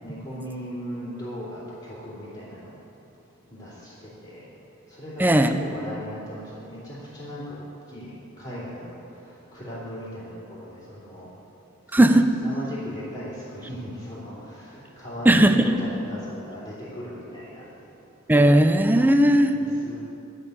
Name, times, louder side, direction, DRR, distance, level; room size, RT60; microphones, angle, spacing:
voice 1, 0.0-2.8 3.5-4.5 4.9-11.3 11.9-12.0 12.4-17.7 19.5-20.0, equal, 35° left, -12 dB, 2.7 m, -38 dB
voice 2, 5.2-5.6 11.9-12.3 15.3-15.7 18.3-19.5, right 1 dB, 10° right, 7 dB, 0.5 m, -17 dB
12.0 x 5.6 x 8.0 m, 2.7 s
head